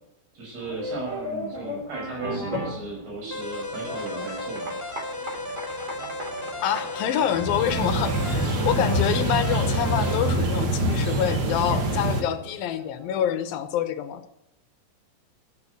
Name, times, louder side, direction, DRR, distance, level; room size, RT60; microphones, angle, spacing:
voice 1, 0.3-4.7 10.0-10.1, right 3 dB, 85° right, -1 dB, 8.1 m, -36 dB
sound 1, 0.6-13.3, equal, 20° right, 2.9 m, -38 dB
sound 2, 3.3-10.2, left 1 dB, 10° left, 1.0 m, -34 dB
voice 2, 6.6-14.2, left 10 dB, 75° left, 10 dB, 2.6 m, -26 dB
sound 3, 7.3-12.2, right 1 dB, 50° right, 1.5 m, -25 dB
13.0 x 10.5 x 8.2 m, 0.81 s
omnidirectional pair, 4.5 m